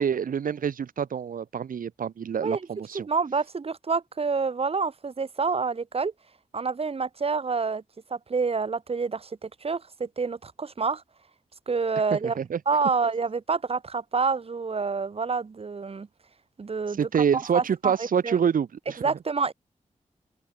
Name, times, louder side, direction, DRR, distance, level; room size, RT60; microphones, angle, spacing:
voice 1, 0.0-3.1 12.1-12.6 17.0-19.0, right 7 dB, 85° right, 1.8 m, -26 dB
voice 2, 2.9-6.1 6.5-7.8 8.1-11.0 11.7-12.4 12.7-16.1 16.6-17.0 17.3-18.4 19.0-19.5, right 4 dB, 45° right, 0.8 m, -28 dB
open air
cardioid pair, 50°, 14 cm